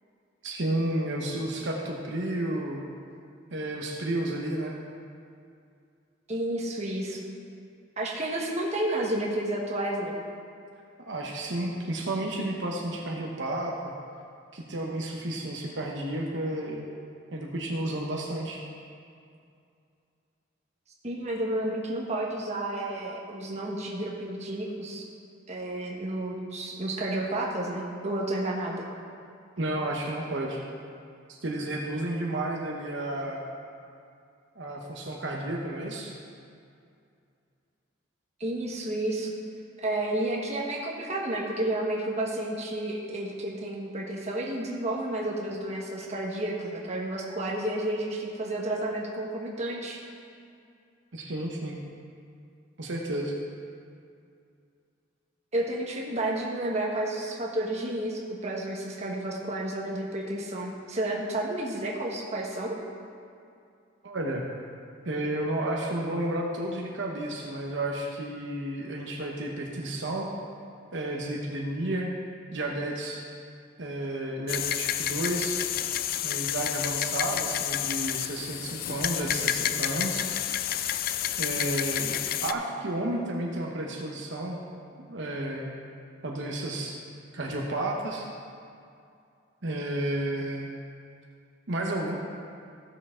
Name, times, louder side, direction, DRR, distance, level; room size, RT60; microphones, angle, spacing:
voice 1, 0.4-2.8 3.5-4.7 11.0-13.9 14.5-16.9 17.3-18.6 29.6-30.6 31.3-33.4 34.6-36.2 51.1-51.8 52.8-53.3 64.0-64.4 65.0-70.3 70.9-72.1 72.5-73.2 73.8-75.7 76.2-80.3 81.4-84.6 85.1-85.7 86.2-87.0 87.3-88.3 89.6-90.7 91.7-92.2, right 1 dB, 65° right, -1 dB, 1.0 m, -32 dB
voice 2, 6.3-7.2 8.0-10.2 21.0-25.0 25.5-28.8 38.4-39.3 39.8-50.0 55.5-62.7, right 1 dB, 35° right, -2 dB, 1.3 m, -31 dB
sound 1, 74.5-82.5, left 11 dB, 45° left, 0.3 m, -30 dB
15.0 x 6.8 x 3.7 m, 2.4 s
head